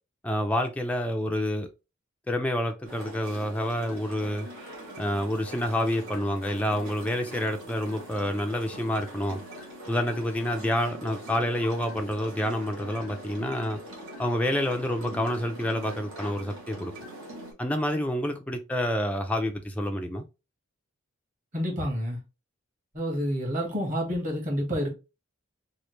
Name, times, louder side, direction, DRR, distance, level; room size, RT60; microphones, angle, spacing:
voice 1, 0.2-1.7 2.3-4.5 5.0-9.4 9.9-13.8 14.2-16.9 17.6-20.2, equal, 5° left, 0.3 m, -28 dB
sound 1, 2.8-17.5, right 1 dB, 80° right, 1.1 m, -42 dB
voice 2, 21.5-22.2 22.9-24.9, equal, 40° right, 1.3 m, -29 dB
3.1 x 2.4 x 3.1 m
head